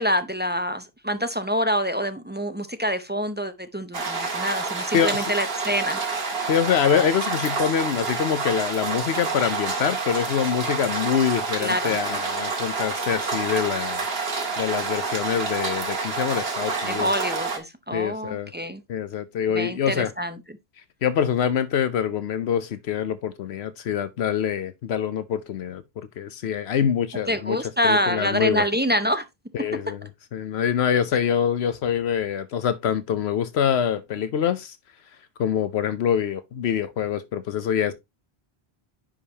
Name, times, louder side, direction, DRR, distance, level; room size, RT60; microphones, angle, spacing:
voice 1, 0.0-6.0 11.6-12.0 16.8-18.8 19.5-20.4 27.3-29.3, equal, 10° right, 0.5 m, -26 dB
sound 1, 3.9-17.6, right 4 dB, 65° right, 1.7 m, -28 dB
voice 2, 4.9-5.3 6.5-14.0 14.6-17.1 17.9-18.5 18.9-20.1 21.0-27.6 27.8-28.6 29.5-34.8 35.4-37.9, left 8 dB, 75° left, 0.9 m, -25 dB
9.8 x 5.1 x 2.8 m
omnidirectional pair, 1.1 m